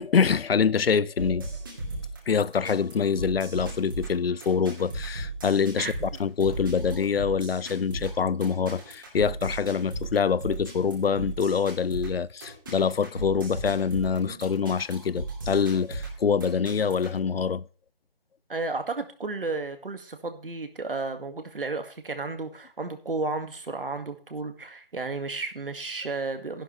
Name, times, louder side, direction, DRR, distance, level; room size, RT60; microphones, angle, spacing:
voice 1, 0.0-1.5 2.3-17.7, left 6 dB, 85° left, 0.6 m, -25 dB
sound 1, 1.2-17.2, right 2 dB, 20° right, 2.4 m, -36 dB
voice 2, 5.8-6.1 14.3-14.4 18.5-26.6, right 3 dB, 70° right, 2.0 m, -33 dB
12.0 x 11.0 x 3.3 m
figure-of-eight pair, 175°, 29 cm